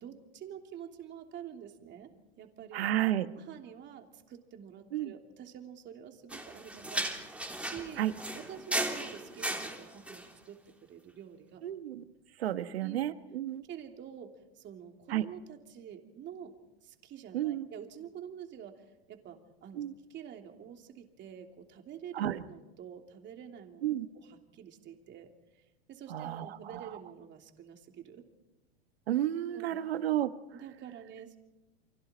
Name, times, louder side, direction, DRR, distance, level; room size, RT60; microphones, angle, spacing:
voice 1, 0.0-2.1 2.4-2.9 3.4-7.1 7.6-8.1 8.3-11.6 12.6-13.0 13.7-16.5 16.8-19.8 20.1-28.2 29.5-29.9 30.5-31.4, right 9 dB, 35° right, 3 dB, 3.1 m, -48 dB
voice 2, 2.7-3.3 4.9-5.1 8.0-8.1 11.6-12.0 12.4-13.6 15.1-15.2 17.3-17.7 19.7-19.9 22.1-22.4 23.8-24.1 26.1-26.9 29.1-30.3, right 12 dB, 80° right, 11 dB, 1.3 m, -31 dB
sound 1, 6.3-10.3, right 1 dB, 5° right, 3.3 m, -36 dB
30.0 x 24.0 x 4.4 m, 1.0 s
hypercardioid pair, 110°, 30 cm